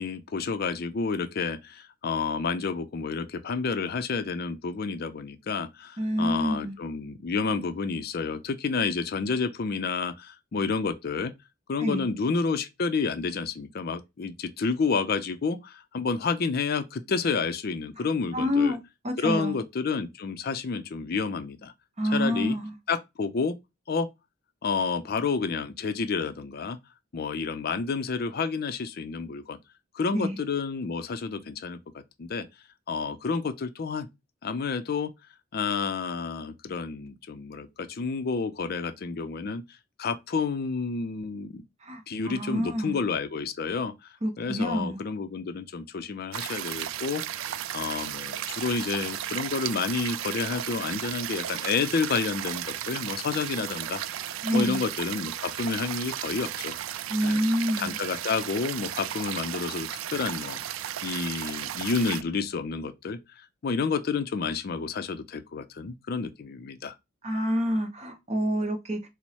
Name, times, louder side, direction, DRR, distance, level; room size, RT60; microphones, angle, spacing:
voice 1, 0.0-11.3 11.7-18.8 19.2-21.7 22.1-22.6 22.9-23.6 23.9-24.1 24.6-26.8 27.1-29.6 29.9-32.5 32.9-34.1 34.4-35.1 35.5-39.6 40.0-41.6 42.1-47.5 47.7-56.8 57.2-57.4 57.8-60.6 61.0-66.9, left 4 dB, 50° left, 0.4 m, -30 dB
voice 2, 6.0-6.8 11.8-12.1 18.3-18.8 19.0-19.6 22.0-22.7 30.1-30.4 41.8-43.0 44.2-45.0 54.4-54.8 57.1-57.9 67.2-69.1, equal, 35° right, 0.8 m, -27 dB
sound 1, 46.3-62.2, right 11 dB, 80° right, 0.3 m, -34 dB
4.5 x 2.0 x 4.1 m
head